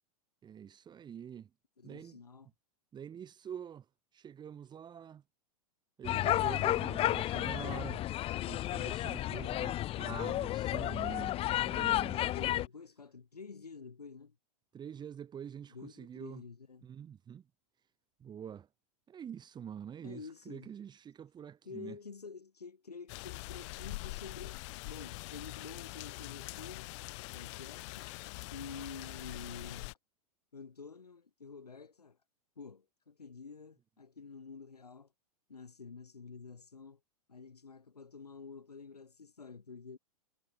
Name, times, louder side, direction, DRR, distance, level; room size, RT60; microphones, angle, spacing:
voice 1, 0.4-1.5 1.8-2.2 2.9-3.8 4.1-5.2 6.0-8.0 8.5-12.2 14.7-16.4 16.8-17.4 18.2-18.7 19.1-22.0, right 8 dB, 20° right, 2.3 m, -46 dB
voice 2, 1.8-2.5 12.0-14.4 15.7-16.9 20.0-20.7 21.6-26.9 27.3-28.1 28.5-29.9 30.5-32.2 32.6-35.1 35.5-37.0 37.3-40.0, left 5 dB, 90° left, 4.3 m, -49 dB
sound 1, 6.0-12.7, left 14 dB, 30° left, 1.0 m, -32 dB
sound 2, 23.1-29.9, left 25 dB, 50° left, 2.2 m, -44 dB
hypercardioid pair, 105°, 19 cm